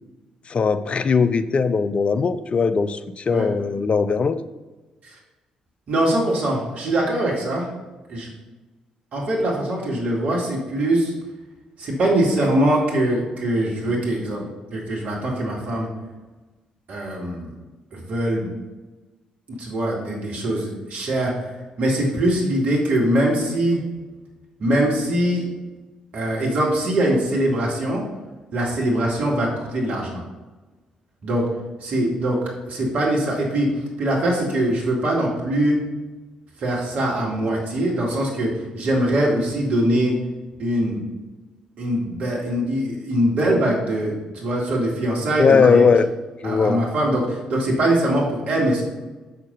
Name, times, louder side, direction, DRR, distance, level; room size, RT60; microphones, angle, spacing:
voice 1, 0.5-4.4 45.4-46.1 46.4-46.8, left 5 dB, 40° left, 12 dB, 0.5 m, -19 dB
voice 2, 5.9-7.7 8.1-8.3 9.1-11.1 11.8-15.9 16.9-17.5 17.9-18.5 19.5-21.3 21.8-23.8 24.6-25.4 26.1-28.0 28.5-30.2 31.2-31.5 31.8-32.4 32.7-33.7 34.0-35.8 36.6-40.2 40.6-41.0 41.8-45.8 46.4-48.8, right 1 dB, 50° right, -2 dB, 2.1 m, -22 dB
7.2 x 5.9 x 5.3 m, 1.2 s
figure-of-eight pair, 45°, 3 cm